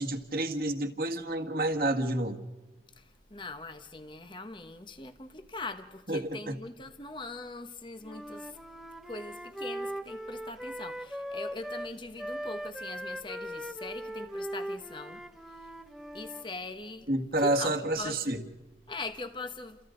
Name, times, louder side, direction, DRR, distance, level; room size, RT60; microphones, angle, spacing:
voice 1, 0.0-2.4 6.1-6.5 17.1-18.4, right 1 dB, 55° right, 1.9 m, -29 dB
voice 2, 3.0-8.6 9.0-15.2 15.5-15.7 16.1-17.1 17.4-18.4 18.9-19.8, left 3 dB, 25° left, 1.2 m, -41 dB
Wind instrument woodwind instrument, 8.0-11.9 12.2-16.5, equal, ahead, 1.0 m, -39 dB
29.5 x 28.0 x 3.9 m
head